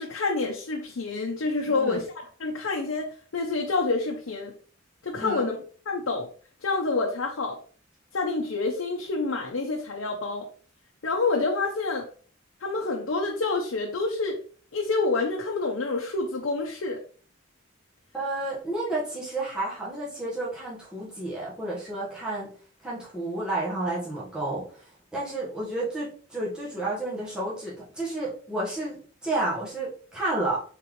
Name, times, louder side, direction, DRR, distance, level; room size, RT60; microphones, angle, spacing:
voice 1, 0.0-2.1 2.4-4.6 5.0-5.6 5.9-6.3 6.6-7.6 8.1-10.5 11.0-12.1 12.6-14.4 14.7-17.0, left 3 dB, 85° left, 0 dB, 0.7 m, -27 dB
voice 2, 1.7-2.0 5.1-5.5 18.1-22.5 22.8-24.8 25.1-30.6, right 2 dB, 5° right, -7 dB, 1.3 m, -31 dB
4.3 x 3.7 x 3.1 m, 0.43 s
head